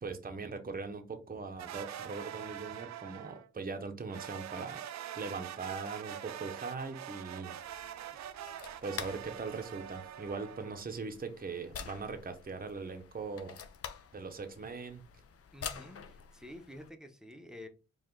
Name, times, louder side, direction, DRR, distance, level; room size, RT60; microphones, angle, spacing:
voice 1, 0.0-4.8 5.1-7.6 8.8-13.6 14.1-15.0, right 4 dB, 30° right, 6 dB, 0.8 m, -40 dB
sound 1, 1.6-3.5 4.1-10.8, right 10 dB, 70° right, 0.4 m, -44 dB
sound 2, 7.6-16.9, left 7 dB, 50° left, 0.6 m, -48 dB
voice 2, 15.5-17.7, left 1 dB, ahead, 5 dB, 0.9 m, -49 dB
4.6 x 2.4 x 3.8 m, 0.31 s
cardioid pair, 60°, 29 cm